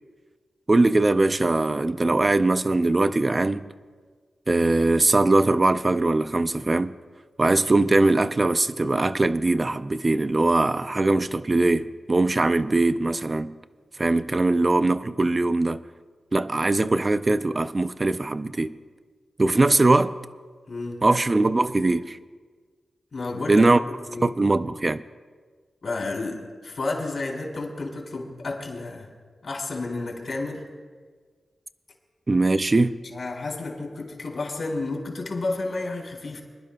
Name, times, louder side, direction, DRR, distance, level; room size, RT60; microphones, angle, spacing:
voice 1, 0.7-3.7 4.5-7.0 7.4-13.6 14.0-15.8 16.3-18.8 19.4-20.2 21.0-22.2 23.5-23.8 24.2-25.0 32.3-33.0, right 2 dB, 40° right, 0.4 m, -21 dB
voice 2, 20.7-21.0 23.1-23.7 24.1-24.3 25.8-29.1 29.4-30.7 33.0-36.4, left 3 dB, 70° left, 3.0 m, -31 dB
27.5 x 10.5 x 2.3 m
cardioid pair, 45°, 0 cm